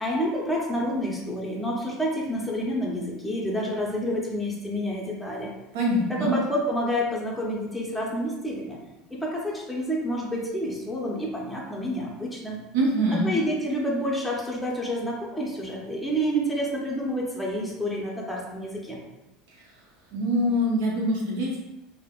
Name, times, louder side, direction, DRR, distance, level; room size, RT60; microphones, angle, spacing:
voice 1, 0.0-5.5 6.1-8.8 9.1-12.6 13.2-19.0, equal, 5° left, -4 dB, 0.6 m, -29 dB
voice 2, 5.7-6.4 12.7-13.3 20.1-21.6, equal, 80° right, -3 dB, 0.8 m, -24 dB
3.3 x 2.1 x 2.3 m, 0.99 s
supercardioid pair, 120°, 0 cm